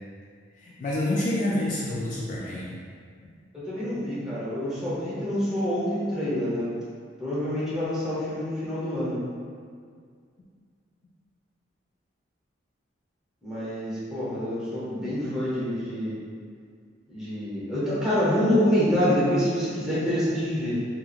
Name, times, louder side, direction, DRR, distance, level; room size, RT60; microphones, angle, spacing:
voice 1, 0.6-2.8, left 1 dB, 40° left, -6 dB, 0.3 m, -28 dB
voice 2, 3.5-6.7 7.2-9.2 13.4-16.2 17.1-20.9, equal, 5° right, -11 dB, 0.8 m, -26 dB
2.8 x 2.4 x 2.3 m, 2.1 s
head